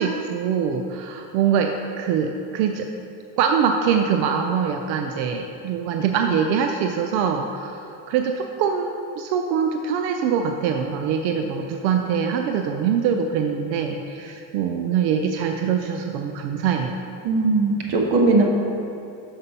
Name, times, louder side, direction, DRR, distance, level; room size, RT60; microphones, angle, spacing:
voice 1, 0.0-2.9 3.4-17.0, right 7 dB, 85° right, 4 dB, 0.7 m, -23 dB
voice 2, 17.2-18.4, right 3 dB, 50° right, 0 dB, 1.4 m, -19 dB
6.6 x 5.7 x 5.5 m, 2.7 s
supercardioid pair, 125°, 50 cm